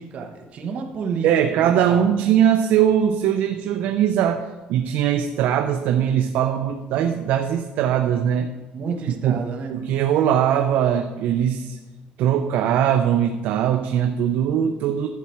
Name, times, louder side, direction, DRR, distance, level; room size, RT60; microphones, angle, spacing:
voice 1, 0.0-2.1 8.7-9.8, right 5 dB, 40° right, 2 dB, 1.2 m, -31 dB
voice 2, 1.2-8.5 9.2-9.4 9.7-11.8 12.2-15.1, right 9 dB, 65° right, 6 dB, 0.6 m, -20 dB
11.5 x 7.5 x 4.4 m, 1.2 s
cardioid pair, 155°, 3 cm